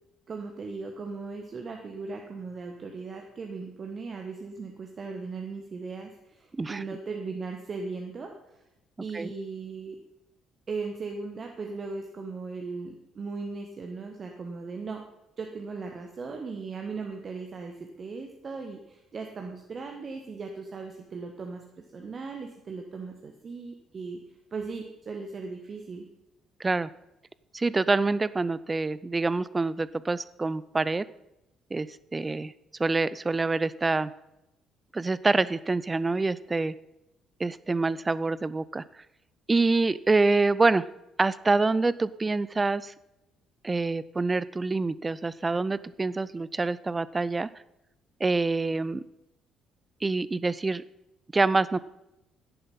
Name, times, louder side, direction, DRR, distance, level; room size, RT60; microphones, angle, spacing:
voice 1, 0.3-8.6 9.0-10.0 10.7-15.1 15.4-24.2 24.5-26.1, right 4 dB, 40° right, 3 dB, 1.2 m, -38 dB
voice 2, 6.5-6.8 9.1-9.3 26.6-26.9 27.5-31.0 31.7-31.9 32.1-32.5 32.8-34.1 34.9-36.7 37.4-38.8 39.5-40.8 41.2-42.9 43.6-47.5 48.2-49.0 50.0-50.8 51.3-51.8, right 3 dB, 25° right, 18 dB, 0.5 m, -26 dB
10.5 x 10.0 x 5.4 m, 0.90 s
figure-of-eight pair, 45°, 0 cm